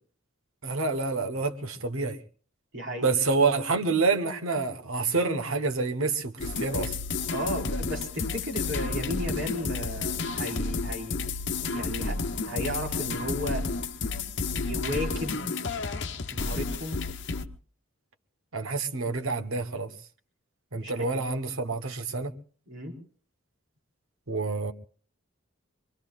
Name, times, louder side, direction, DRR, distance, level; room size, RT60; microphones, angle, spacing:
voice 1, 0.6-2.2 3.0-7.0 18.5-19.9 20.7-22.3 24.3-24.7, right 4 dB, 85° right, 1.2 m, -27 dB
voice 2, 2.7-3.1 7.3-11.2 11.7-13.7 14.5-15.6 16.3-17.0 20.7-21.2 22.7-22.9, equal, 60° right, 4.7 m, -34 dB
sound 1, 6.4-17.5, left 4 dB, 60° left, 0.9 m, -31 dB
25.0 x 23.0 x 2.5 m
head